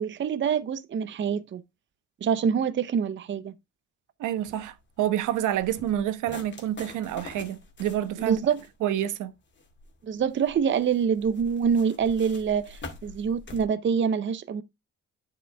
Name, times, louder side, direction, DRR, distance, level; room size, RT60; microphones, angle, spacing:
voice 1, 0.0-1.6 2.2-3.5 8.3-8.6 10.0-14.6, right 7 dB, 40° right, 0.6 m, -26 dB
voice 2, 4.2-8.4 8.8-9.3, right 11 dB, 85° right, 1.0 m, -28 dB
sound 1, 4.4-13.6, left 3 dB, 35° left, 2.2 m, -46 dB
9.2 x 5.2 x 3.3 m
cardioid pair, 90°, 30 cm